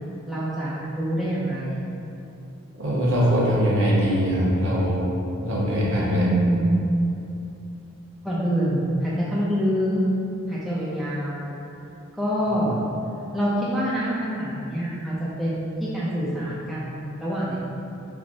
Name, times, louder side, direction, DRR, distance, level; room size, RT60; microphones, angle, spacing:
voice 1, 0.3-1.8 6.0-6.8 8.2-10.0 10.5-11.5 12.1-12.8 13.3-17.6, right 1 dB, ahead, -9 dB, 0.4 m, -25 dB
voice 2, 2.8-5.1 5.4-6.2, equal, 60° right, -6 dB, 0.9 m, -22 dB
5.8 x 2.1 x 2.7 m, 2.8 s
head